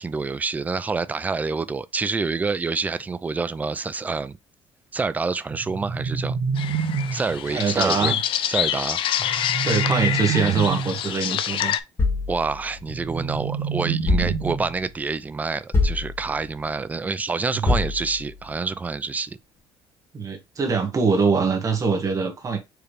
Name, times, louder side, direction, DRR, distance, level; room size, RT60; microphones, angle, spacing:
voice 1, 0.0-4.4 4.9-6.4 7.1-8.1 8.5-9.7 12.3-19.4, right 4 dB, 15° right, 0.3 m, -27 dB
sound 1, 5.5-7.5 9.2-11.1 12.9-14.9, right 6 dB, 50° right, 0.8 m, -27 dB
sound 2, 6.6-11.8, left 10 dB, 55° left, 0.5 m, -26 dB
voice 2, 7.5-8.2 9.6-11.7 17.5-17.8 20.1-22.6, right 5 dB, 30° right, 1.4 m, -23 dB
sound 3, 12.0-13.4 14.1-14.9 15.7-16.6 17.7-18.5, left 3 dB, 25° left, 1.8 m, -26 dB
4.8 x 3.2 x 3.3 m
cardioid pair, 135°, 11 cm